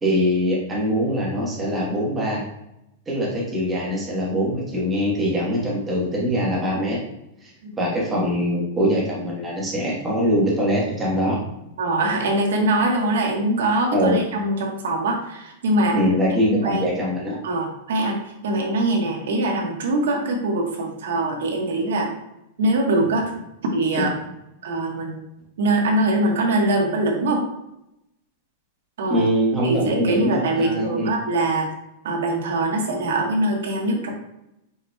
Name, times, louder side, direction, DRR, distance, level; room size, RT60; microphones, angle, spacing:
voice 1, 0.0-2.4 3.1-7.0 7.4-7.5 7.8-11.4 13.9-14.2 15.9-17.4 24.0-24.1 29.1-31.1, equal, 10° right, -5 dB, 1.1 m, -22 dB
voice 2, 11.8-16.0 16.5-16.9 17.4-18.2 18.4-22.1 22.6-23.3 23.6-24.1 24.6-25.2 25.6-27.5 29.0-29.3 29.6-31.7 32.0-34.1, right 2 dB, 90° right, 1 dB, 1.1 m, -22 dB
4.9 x 4.8 x 2.2 m, 0.86 s
supercardioid pair, 175°, 0 cm